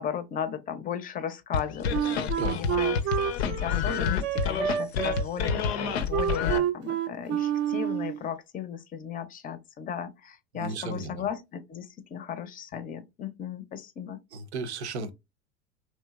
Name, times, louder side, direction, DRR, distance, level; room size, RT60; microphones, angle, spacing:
voice 1, 0.0-3.0 3.4-14.2, left 8 dB, 25° left, 0.5 m, -36 dB
sound 1, 1.5-6.6, left 7 dB, 70° left, 0.5 m, -28 dB
Wind instrument woodwind instrument, 1.9-8.2, right 9 dB, 35° right, 0.5 m, -29 dB
voice 2, 10.5-11.2 14.3-15.1, right 3 dB, 80° right, 0.6 m, -34 dB
3.1 x 2.8 x 2.3 m
hypercardioid pair, 80°, 33 cm